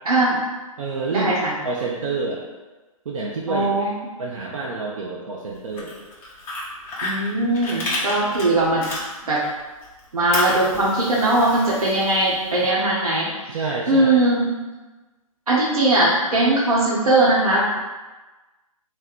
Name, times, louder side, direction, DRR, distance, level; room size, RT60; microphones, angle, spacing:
voice 1, 0.0-0.4 1.1-1.5 3.5-3.9 7.0-8.9 9.3-9.4 10.1-13.3 13.9-14.6 15.5-17.6, right 2 dB, 85° right, -6 dB, 0.9 m, -19 dB
voice 2, 0.8-1.3 1.6-2.4 3.1-6.0 12.6-12.7 13.5-14.2, right 3 dB, 65° right, -3 dB, 0.6 m, -28 dB
Fire, 5.6-9.5 9.8-12.6, left 1 dB, 15° left, 0.5 m, -31 dB
3.1 x 2.1 x 4.0 m, 1.2 s
hypercardioid pair, 140°, 18 cm